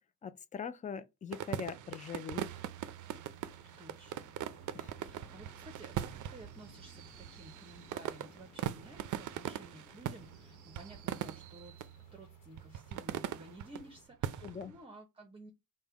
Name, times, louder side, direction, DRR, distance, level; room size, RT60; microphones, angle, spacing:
voice 1, 0.2-2.7 4.7-4.9 14.4-14.7, left 6 dB, 25° left, 0.4 m, -42 dB
sound 1, 1.3-11.9 12.6-13.8 14.2-14.8, right 11 dB, 70° right, 0.4 m, -41 dB
sound 2, 2.3-14.0, right 8 dB, 75° left, 1.0 m, -56 dB
voice 2, 3.8-4.4 4.7-11.9 12.1-15.5, right 1 dB, 15° right, 0.7 m, -54 dB
sound 3, 4.4-11.0, left 2 dB, 10° left, 0.9 m, -61 dB
5.2 x 2.2 x 4.6 m
cardioid pair, 140°, 32 cm